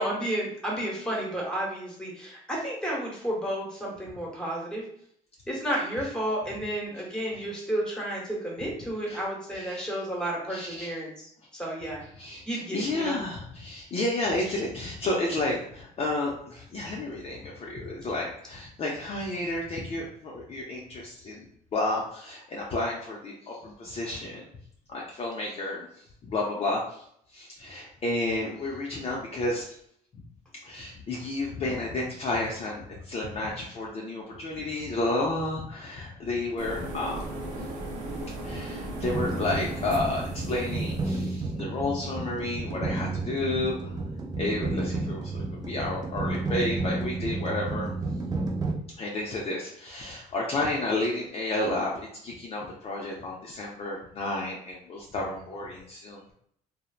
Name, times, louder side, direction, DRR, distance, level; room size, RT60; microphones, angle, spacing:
voice 1, 0.0-4.8 5.5-12.0 12.4-13.2, right 1 dB, 5° left, -3 dB, 1.1 m, -32 dB
voice 2, 5.7-6.1 6.5-6.6 7.3-7.5 9.1-9.2 9.5-10.0 10.5-11.0 12.1-21.5 21.7-24.5 24.9-25.9 26.2-27.0 27.3-29.8 30.6-37.2 38.4-44.0 44.4-47.9 48.4-48.5 49.0-56.3, left 2 dB, 40° left, -3 dB, 0.5 m, -31 dB
sound 1, 36.6-41.4, right 1 dB, 50° right, 0.8 m, -37 dB
sound 2, 39.0-48.7, right 3 dB, 25° right, 0.5 m, -31 dB
3.1 x 2.0 x 2.4 m, 0.67 s
cardioid pair, 110°, 16 cm